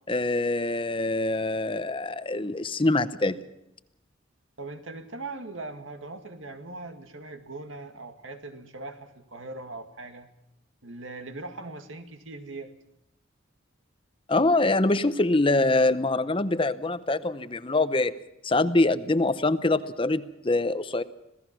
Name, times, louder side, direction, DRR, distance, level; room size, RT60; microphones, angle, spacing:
voice 1, 0.1-3.4 14.3-18.2 18.4-21.0, left 2 dB, 25° left, 13 dB, 0.8 m, -24 dB
voice 2, 4.6-10.3 10.8-12.7, right 2 dB, 85° right, 7 dB, 2.0 m, -40 dB
26.5 x 17.5 x 6.0 m, 0.87 s
head